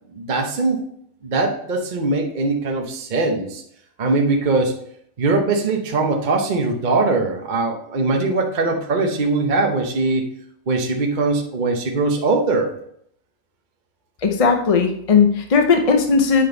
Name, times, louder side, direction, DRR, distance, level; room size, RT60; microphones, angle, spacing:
voice 1, 0.1-0.8 1.2-3.6 4.0-4.7 5.2-10.2 10.7-12.7, right 3 dB, 40° right, 2 dB, 0.8 m, -21 dB
voice 2, 14.2-16.4, left 5 dB, 40° left, 4 dB, 0.5 m, -17 dB
8.7 x 5.2 x 3.9 m, 0.68 s
omnidirectional pair, 1.5 m